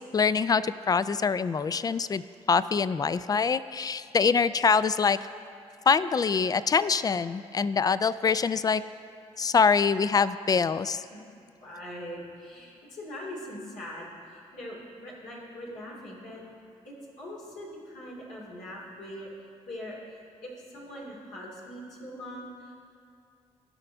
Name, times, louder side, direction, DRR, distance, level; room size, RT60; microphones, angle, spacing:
voice 1, 0.0-2.2 2.5-5.2 5.9-8.8 9.4-11.0, left 5 dB, 30° left, 16 dB, 0.3 m, -24 dB
voice 2, 11.6-16.4 16.8-19.3 19.7-22.7, equal, 75° left, -4 dB, 2.6 m, -42 dB
15.5 x 5.8 x 3.5 m, 2.4 s
supercardioid pair, 55°, 13 cm